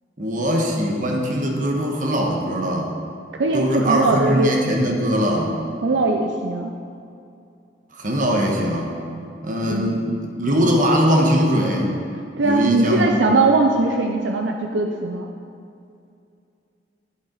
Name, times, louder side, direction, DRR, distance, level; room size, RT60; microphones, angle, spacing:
voice 1, 0.2-2.9 3.5-5.6 7.9-9.0 9.4-10.0 10.4-11.9 12.4-13.2, equal, 45° right, 0 dB, 1.3 m, -21 dB
voice 2, 3.4-4.5 5.8-6.7 9.7-10.0 12.4-15.3, right 3 dB, 85° right, 3 dB, 0.6 m, -20 dB
11.5 x 7.3 x 3.9 m, 2.4 s
head